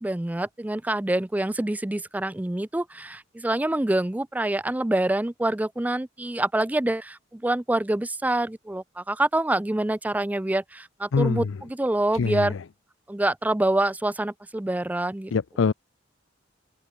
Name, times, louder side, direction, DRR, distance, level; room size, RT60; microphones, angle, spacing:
voice 1, 0.0-12.5 13.1-15.3, right 1 dB, 10° right, 0.4 m, -26 dB
voice 2, 11.1-11.5 12.1-12.6 15.3-15.7, left 5 dB, 90° left, 0.5 m, -24 dB
open air
head